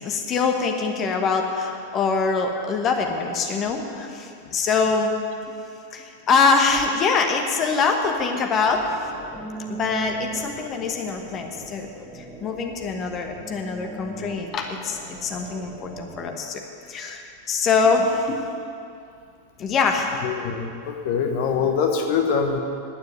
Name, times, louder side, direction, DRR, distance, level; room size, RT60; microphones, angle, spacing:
voice 1, 0.0-5.1 5.9-8.8 9.7-16.6 16.9-18.4 19.6-20.2, left 4 dB, 30° left, 4 dB, 1.2 m, -24 dB
sound 1, 8.6-16.3, right 3 dB, ahead, 2.5 m, -39 dB
voice 2, 20.2-22.6, left 6 dB, 45° left, 4 dB, 1.2 m, -24 dB
9.8 x 9.4 x 9.4 m, 2.5 s
figure-of-eight pair, 90°, 0 cm